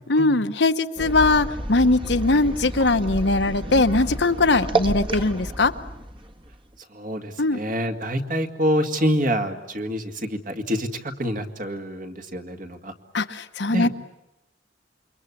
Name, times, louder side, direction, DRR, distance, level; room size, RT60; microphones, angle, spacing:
voice 1, 0.1-5.7 7.4-7.6 13.1-13.9, left 2 dB, 70° left, 9 dB, 1.1 m, -20 dB
sound 1, 1.0-6.8, right 2 dB, 30° right, 1.5 m, -30 dB
voice 2, 6.9-12.9 13.7-13.9, equal, 45° right, 5 dB, 2.1 m, -26 dB
28.0 x 24.0 x 8.5 m, 0.88 s
head